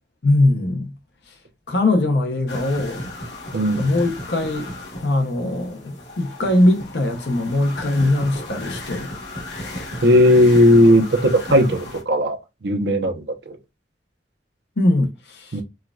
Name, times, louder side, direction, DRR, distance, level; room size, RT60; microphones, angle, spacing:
voice 1, 0.2-0.9 1.3-1.4 1.7-3.0 3.8-4.7 5.0-9.1 14.8-15.6, left 2 dB, 65° left, 0.7 m, -21 dB
sound 1, 2.5-12.0, left 1 dB, 85° left, 1.3 m, -34 dB
voice 2, 3.5-3.9 10.0-13.6 15.5-15.6, equal, 65° right, 0.7 m, -16 dB
4.4 x 2.3 x 2.2 m
head